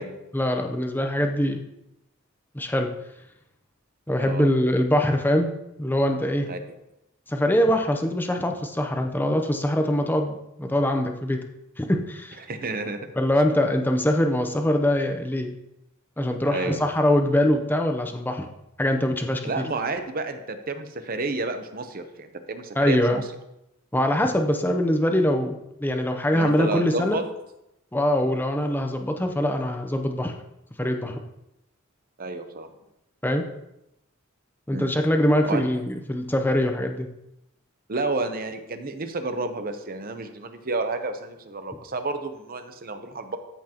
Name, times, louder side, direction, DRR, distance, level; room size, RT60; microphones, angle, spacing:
voice 1, 0.3-1.6 2.5-2.9 4.1-5.5 5.8-6.5 7.3-11.4 11.8-12.4 13.2-15.5 16.2-18.5 18.8-19.6 22.8-23.2 23.9-27.2 27.9-30.3 30.8-31.2 33.2-33.4 34.7-37.1, left 1 dB, 10° left, 4 dB, 0.7 m, -23 dB
voice 2, 12.4-13.1 16.5-16.8 19.4-23.2 26.3-27.2 32.2-32.7 34.7-34.9 35.5-35.6 37.9-43.4, right 3 dB, 40° right, 8 dB, 0.8 m, -30 dB
13.5 x 6.0 x 2.9 m, 0.87 s
head